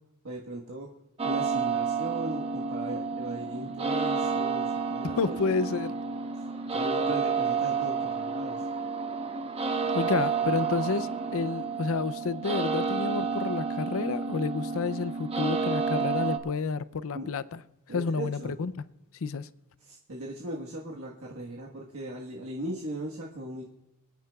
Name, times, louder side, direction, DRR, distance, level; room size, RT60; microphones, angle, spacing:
voice 1, 0.2-0.9 1.2-5.3 6.7-8.6 17.1-17.3 17.9-18.5 19.8-23.6, right 2 dB, 70° right, 1.4 m, -38 dB
sound 1, 1.2-16.4, right 5 dB, 30° right, 0.9 m, -30 dB
voice 2, 5.0-5.9 9.9-17.6 17.9-18.7 19.2-19.5, left 4 dB, 65° left, 0.5 m, -30 dB
27.0 x 9.5 x 2.3 m
head